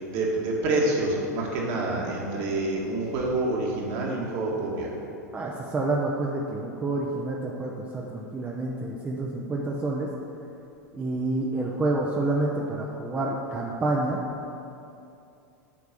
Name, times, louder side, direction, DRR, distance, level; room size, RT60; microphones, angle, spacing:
voice 1, 0.1-4.9, right 2 dB, 45° right, -2 dB, 1.8 m, -27 dB
voice 2, 5.3-10.1 10.9-14.2, right 2 dB, 15° right, -2 dB, 0.7 m, -28 dB
8.5 x 4.7 x 6.7 m, 2.7 s
figure-of-eight pair, 85°, 9 cm